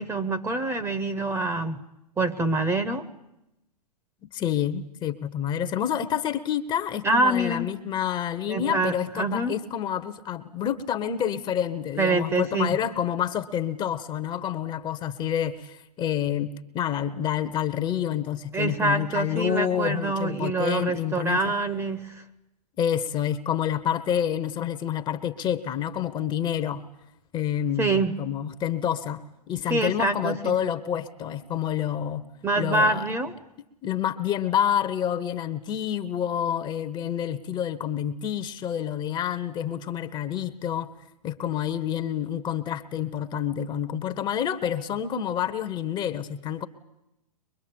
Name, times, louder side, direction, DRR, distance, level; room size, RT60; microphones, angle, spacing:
voice 1, 0.0-1.8 2.2-3.1 7.0-7.7 8.5-9.5 12.0-12.7 18.5-22.2 27.8-28.1 29.7-30.5 32.4-33.3, right 2 dB, 10° right, 11 dB, 1.1 m, -25 dB
voice 2, 4.3-21.5 22.8-26.8 27.3-29.2 29.5-32.2 32.6-33.0 33.8-40.9 41.2-46.7, left 9 dB, 20° left, 10 dB, 1.1 m, -28 dB
23.0 x 22.0 x 8.8 m, 0.87 s
hypercardioid pair, 120°, 21 cm